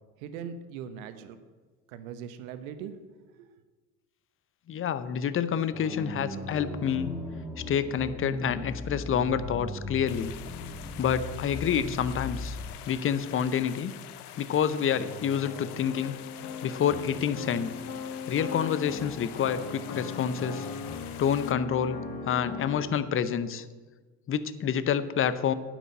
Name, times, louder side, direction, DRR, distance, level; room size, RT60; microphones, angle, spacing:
voice 1, 0.2-1.4 1.9-2.9 3.3-3.5, right 8 dB, 70° right, 10 dB, 1.1 m, -40 dB
voice 2, 4.7-7.1 7.6-10.3 11.0-12.6 12.9-13.9 14.4-16.1 16.6-17.7 18.3-20.7 21.2-22.0 22.2-23.7 24.3-25.5, left 8 dB, 30° left, 14 dB, 0.7 m, -28 dB
sound 1, 5.7-12.8, left 1 dB, 5° right, 2.1 m, -37 dB
sound 2, 10.1-21.5, left 12 dB, 80° left, 0.6 m, -46 dB
sound 3, 14.9-22.9, left 5 dB, 50° left, 1.9 m, -38 dB
9.3 x 6.1 x 8.2 m, 1.3 s
hypercardioid pair, 65°, 44 cm